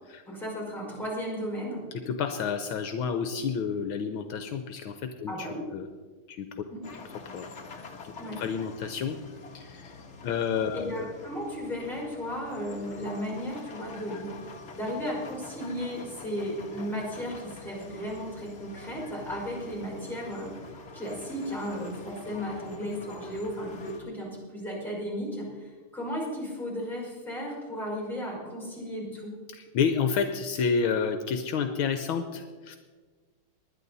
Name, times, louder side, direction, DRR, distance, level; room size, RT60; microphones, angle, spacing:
voice 1, 0.3-1.9 5.3-5.7 6.7-6.8 8.2-8.4 10.7-20.6 20.9-29.4, equal, ahead, -3 dB, 5.1 m, -35 dB
voice 2, 2.1-5.9 6.3-6.5 7.3-7.9 8.3-9.2 9.5-10.0 10.2-11.1 29.5-32.8, left 6 dB, 75° left, 7 dB, 1.5 m, -30 dB
sound 1, 6.8-24.0, left 4 dB, 40° left, 1.3 m, -46 dB
20.0 x 11.0 x 4.1 m, 1.4 s
omnidirectional pair, 2.4 m